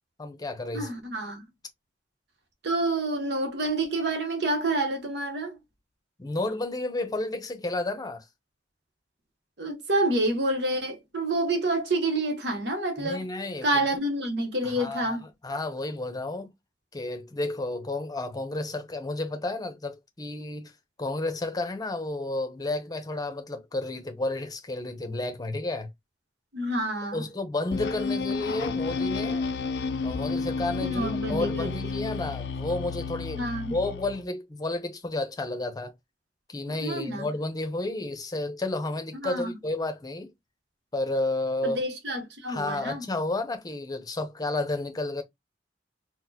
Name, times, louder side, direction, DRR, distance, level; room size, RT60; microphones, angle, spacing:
voice 1, 0.2-0.9 6.2-8.2 13.0-13.9 14.6-15.2 15.4-16.5 16.9-20.7 21.0-25.9 27.1-29.5 30.0-35.9 36.5-40.3 40.9-41.8 42.5-45.2, left 2 dB, 20° left, 0.7 m, -31 dB
voice 2, 0.7-1.4 2.6-5.6 9.6-13.3 13.6-15.2 26.5-27.2 30.8-32.0 33.3-33.7 36.8-37.3 39.2-39.5 41.6-43.1, right 1 dB, 70° right, 0.9 m, -28 dB
sound 1, 27.7-34.2, left 4 dB, 70° left, 0.5 m, -31 dB
4.1 x 2.1 x 2.7 m
head